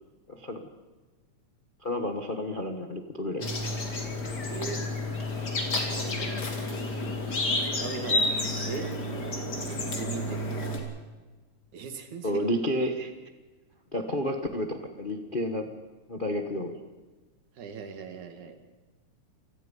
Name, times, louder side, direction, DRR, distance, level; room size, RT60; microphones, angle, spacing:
voice 1, 0.3-0.6 1.8-3.5 12.2-13.1 13.9-15.7 16.1-16.8, left 1 dB, 55° left, 5 dB, 0.5 m, -31 dB
sound 1, 3.4-10.8, left 2 dB, 35° left, 3.4 m, -30 dB
voice 2, 4.4-4.8 5.7-6.5 7.6-8.3 8.6-8.9 9.3-9.4 9.9-10.4 11.7-12.5 17.6-18.6, right 6 dB, 75° right, 7 dB, 3.4 m, -38 dB
28.5 x 18.5 x 5.4 m, 1.3 s
omnidirectional pair, 3.4 m